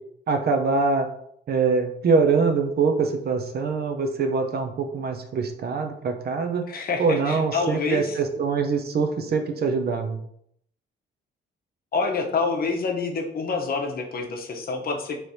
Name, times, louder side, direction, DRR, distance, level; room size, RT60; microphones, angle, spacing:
voice 1, 0.3-1.1 1.5-6.6 7.0-10.2, right 4 dB, 55° right, 5 dB, 0.7 m, -23 dB
voice 2, 6.7-8.2 11.9-15.2, left 4 dB, 50° left, 3 dB, 0.9 m, -27 dB
3.3 x 3.1 x 4.1 m, 0.69 s
cardioid pair, 90°, 20 cm